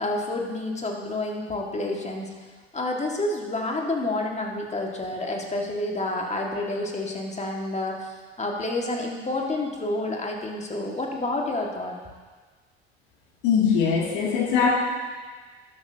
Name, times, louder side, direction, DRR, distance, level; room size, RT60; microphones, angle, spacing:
voice 1, 0.0-2.3 2.7-12.0, left 2 dB, 20° left, 0 dB, 2.1 m, -29 dB
voice 2, 13.4-14.7, left 6 dB, 65° left, -2 dB, 2.7 m, -21 dB
12.5 x 11.0 x 2.9 m, 1.4 s
hypercardioid pair, 65°, 32 cm